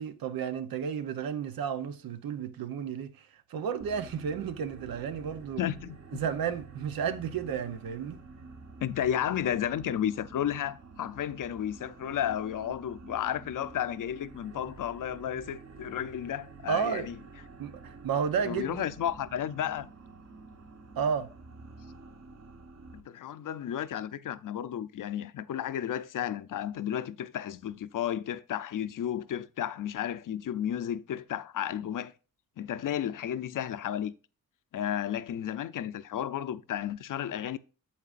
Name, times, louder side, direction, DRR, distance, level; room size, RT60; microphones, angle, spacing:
voice 1, 0.0-5.6 6.1-8.2 16.7-17.1 17.6-18.8 21.0-21.3, right 7 dB, 90° right, 0.9 m, -32 dB
sound 1, 3.8-23.0, right 4 dB, 50° right, 1.2 m, -49 dB
voice 2, 5.6-6.2 8.8-17.1 18.4-19.9 22.9-32.1 32.6-34.1 34.7-37.6, left 10 dB, 65° left, 0.6 m, -33 dB
8.5 x 7.6 x 2.5 m
cardioid pair, 110°, 35 cm